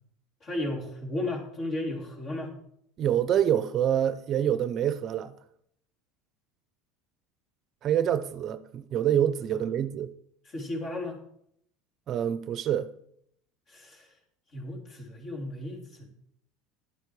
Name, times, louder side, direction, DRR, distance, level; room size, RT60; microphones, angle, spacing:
voice 1, 0.4-2.6 10.5-11.2 13.7-14.1 14.5-16.1, left 1 dB, 45° left, 3.5 m, -34 dB
voice 2, 3.0-5.3 7.8-10.1 12.1-12.9, right 10 dB, 45° right, 0.7 m, -26 dB
11.5 x 8.2 x 4.8 m
supercardioid pair, 110°, 0 cm